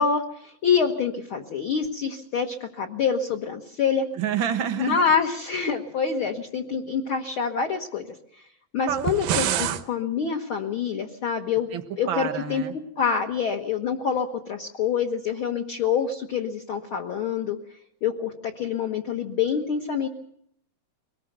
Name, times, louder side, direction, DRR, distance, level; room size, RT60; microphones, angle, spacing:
voice 1, 0.0-4.0 4.8-8.1 8.7-11.7 12.0-12.6 13.0-17.6 18.0-20.1, left 6 dB, 55° left, 2 dB, 1.6 m, -26 dB
voice 2, 4.2-5.0 8.9-9.1 9.4-9.8 11.7-11.8 12.1-12.7, right 9 dB, 55° right, 8 dB, 1.4 m, -28 dB
sound 1, 8.9-9.8, right 10 dB, 75° right, 2.6 m, -26 dB
23.5 x 19.5 x 6.7 m, 0.71 s
omnidirectional pair, 4.0 m